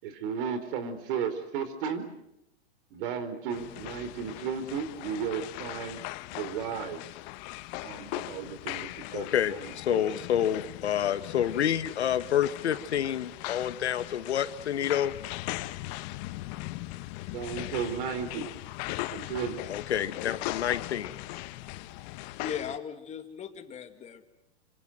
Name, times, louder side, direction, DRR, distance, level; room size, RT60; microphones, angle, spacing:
voice 1, 0.0-2.1 2.9-6.0 6.3-7.0 7.8-10.0 17.3-18.5 19.1-19.6, right 7 dB, 55° right, 12 dB, 4.4 m, -34 dB
sound 1, 3.5-22.8, left 18 dB, 40° left, 1.1 m, -39 dB
voice 2, 9.1-15.1 19.7-21.1, left 10 dB, 85° left, 12 dB, 1.8 m, -28 dB
voice 3, 22.4-24.3, left 8 dB, 20° left, 8 dB, 2.3 m, -38 dB
26.5 x 25.5 x 7.9 m, 0.85 s
hypercardioid pair, 135°, 33 cm